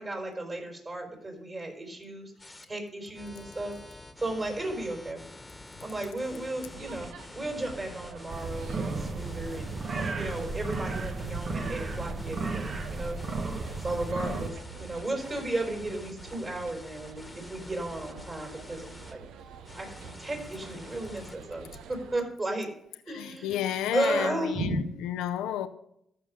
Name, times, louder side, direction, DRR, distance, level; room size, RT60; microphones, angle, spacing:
voice 1, 0.0-2.3 2.6-5.2 5.8-13.2 13.8-19.2 19.7-22.7 23.1-23.6 23.9-24.8, right 2 dB, 35° right, 4.7 m, -34 dB
sound 1, 2.4-2.6 3.1-19.1 19.6-21.4, left 2 dB, 15° left, 1.4 m, -48 dB
sound 2, 6.7-22.2, right 7 dB, 80° right, 0.7 m, -48 dB
sound 3, 8.3-14.5, right 3 dB, 55° right, 1.2 m, -34 dB
voice 2, 14.1-14.4 23.1-25.7, left 11 dB, 85° left, 0.5 m, -32 dB
14.0 x 5.6 x 6.4 m
supercardioid pair, 55°, 0 cm